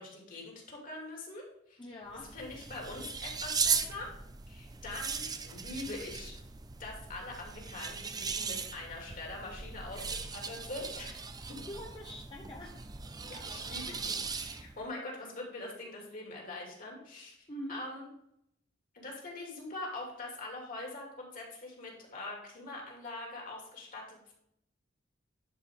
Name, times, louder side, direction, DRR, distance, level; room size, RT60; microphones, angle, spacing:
voice 1, 0.0-1.8 2.3-4.1 4.5-6.4 6.8-11.2 11.5-11.6 13.2-18.1 18.9-24.3, left 2 dB, 45° left, -1 dB, 2.6 m, -43 dB
voice 2, 1.8-2.3 9.9-10.2 11.7-12.7 17.5-17.8, equal, 25° left, -1 dB, 0.9 m, -44 dB
sound 1, 2.1-14.8, right 5 dB, 20° right, 0.5 m, -38 dB
10.5 x 4.9 x 3.6 m, 0.75 s
head